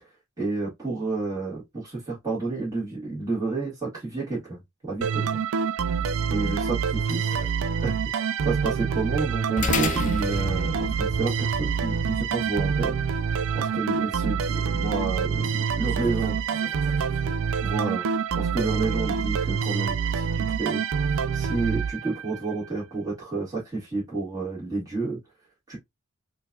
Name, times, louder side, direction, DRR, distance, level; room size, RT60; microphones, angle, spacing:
voice 1, 0.4-4.6 4.8-5.4 6.3-6.8 7.1-7.3 7.8-7.9 8.4-13.0 13.5-16.4 17.6-18.0 18.4-20.8 21.3-25.2 25.7-25.8, right 3 dB, 20° right, 1.9 m, -30 dB
sound 1, 5.0-22.5, right 6 dB, 85° right, 0.4 m, -26 dB
voice 2, 6.3-7.6 15.8-17.4, right 1 dB, 40° right, 2.4 m, -46 dB
sound 2, 9.6-18.2, left 4 dB, 40° left, 0.5 m, -36 dB
4.5 x 2.6 x 2.3 m
head